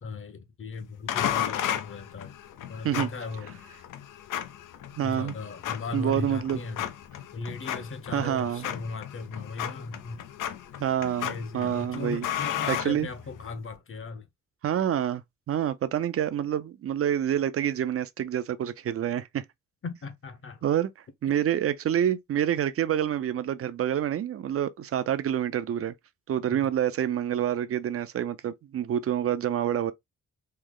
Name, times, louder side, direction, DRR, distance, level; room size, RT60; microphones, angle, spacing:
voice 1, 0.0-2.3 2.7-3.5 5.0-6.9 7.3-10.2 11.2-14.3 19.8-20.6 21.3-21.4 26.5-26.7, left 4 dB, 40° left, 0.8 m, -37 dB
sound 1, 1.1-13.6, left 10 dB, 80° left, 0.6 m, -35 dB
voice 2, 5.0-5.3 5.9-6.6 8.1-8.7 10.8-12.3 12.7-13.1 14.6-19.4 20.6-20.9 21.2-25.9 26.3-29.9, right 10 dB, 45° right, 0.5 m, -27 dB
3.3 x 2.1 x 3.6 m
cardioid pair, 80°, 31 cm